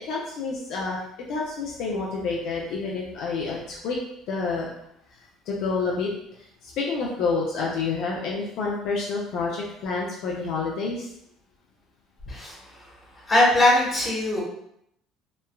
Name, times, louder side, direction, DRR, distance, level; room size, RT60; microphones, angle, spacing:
voice 1, 0.1-1.0 1.3-4.0 4.3-4.7 5.5-6.1 6.6-11.1, left 4 dB, 60° left, -3 dB, 0.4 m, -28 dB
voice 2, 12.3-12.6 13.3-14.4, left 1 dB, 20° left, -6 dB, 1.1 m, -20 dB
3.1 x 2.2 x 2.2 m, 0.75 s
cardioid pair, 150°, 0 cm